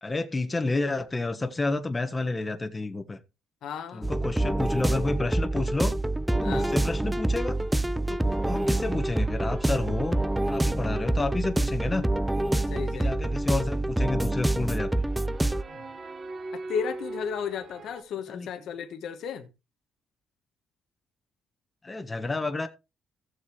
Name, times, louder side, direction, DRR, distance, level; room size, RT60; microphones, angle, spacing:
voice 1, 0.0-3.2 3.9-5.9 6.4-7.6 8.1-10.2 10.5-12.1 12.9-14.9 18.3-18.5 21.8-22.7, left 2 dB, 20° left, 1.3 m, -30 dB
voice 2, 3.6-4.1 6.4-6.7 12.7-13.2 15.7-15.8 16.5-19.5, left 7 dB, 75° left, 1.2 m, -34 dB
sound 1, 4.0-15.6, right 1 dB, 5° right, 0.5 m, -26 dB
sound 2, 8.4-18.0, right 2 dB, 45° right, 1.4 m, -44 dB
16.0 x 7.3 x 3.1 m
cardioid pair, 90°, 0 cm